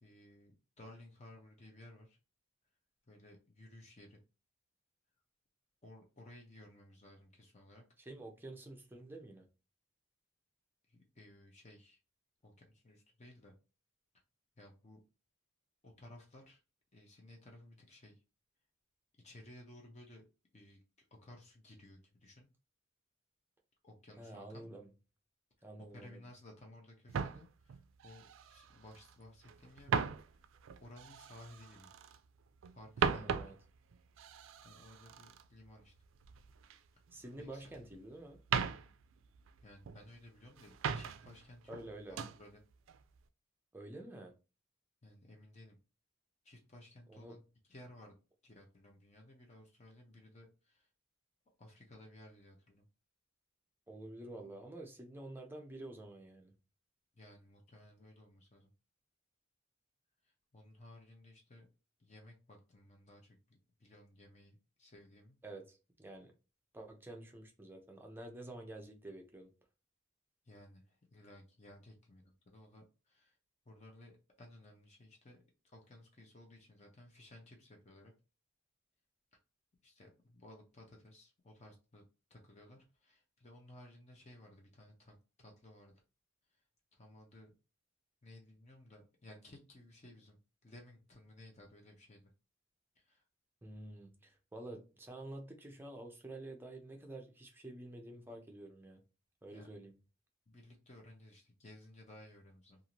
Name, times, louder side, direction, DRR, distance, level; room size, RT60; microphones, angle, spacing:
voice 1, 0.0-2.2 3.1-4.2 5.8-7.8 10.9-12.0 12.4-13.6 14.6-15.0 15.8-16.6 16.9-18.2 19.2-20.2 20.5-20.8 21.1-22.5 23.8-24.7 25.9-30.5 30.8-31.9 32.7-33.4 34.6-35.9 37.4-37.7 39.6-41.8 42.1-42.6 45.0-45.8 46.4-47.4 47.7-48.1 48.4-50.9 51.6-52.9 57.1-58.7 60.2-61.7 62.0-65.4 70.4-73.4 73.7-78.1 79.8-82.0 82.3-86.0 86.5-86.6 86.9-87.5 88.2-92.3 93.0-93.2 99.5-99.7 100.5-102.8, left 1 dB, 35° left, 0.6 m, -57 dB
voice 2, 8.0-9.5 24.2-24.9 25.6-26.2 33.1-33.5 37.1-38.4 41.7-42.2 43.7-44.3 47.1-47.4 53.9-56.5 65.4-66.3 66.7-69.5 93.6-99.0 99.4-99.9, right 1 dB, 10° right, 0.5 m, -49 dB
sound 1, 27.1-29.1 29.4-32.3 32.6-36.8 37.1-38.0 38.3-40.2 40.5-41.4 41.7-42.4 42.9-43.2, right 6 dB, 70° right, 0.3 m, -39 dB
2.6 x 2.5 x 2.9 m
head